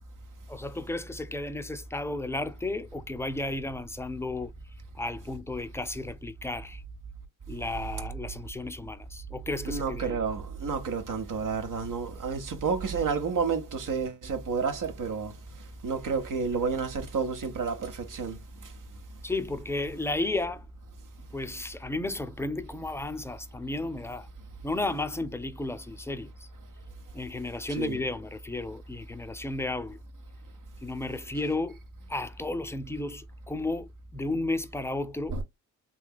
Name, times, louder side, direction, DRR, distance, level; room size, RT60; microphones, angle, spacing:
voice 1, 0.5-4.5 4.9-6.8 7.5-10.2 19.2-20.7 21.3-24.3 24.6-26.3 27.1-30.0 30.8-31.8 32.1-33.9 34.1-35.4, left 2 dB, 5° left, 0.5 m, -33 dB
voice 2, 9.6-15.3 15.8-18.4 27.7-28.0 35.3-35.4, right 5 dB, 50° right, 1.0 m, -30 dB
3.3 x 2.8 x 2.3 m
supercardioid pair, 55°, 39 cm